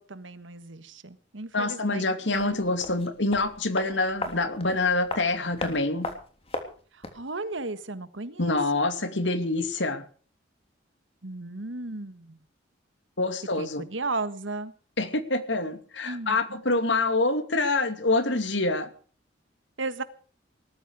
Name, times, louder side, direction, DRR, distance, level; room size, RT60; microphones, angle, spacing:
voice 1, 0.0-2.6 6.9-8.9 11.2-12.4 13.6-14.7 16.0-16.6 19.8-20.0, right 3 dB, 85° right, 1.6 m, -35 dB
voice 2, 1.5-6.1 8.4-10.0 13.2-13.8 15.0-18.9, left 2 dB, 70° left, 2.5 m, -26 dB
sound 1, 2.3-7.3 7.5-7.6, left 2 dB, 35° left, 3.4 m, -37 dB
19.5 x 13.5 x 4.9 m
head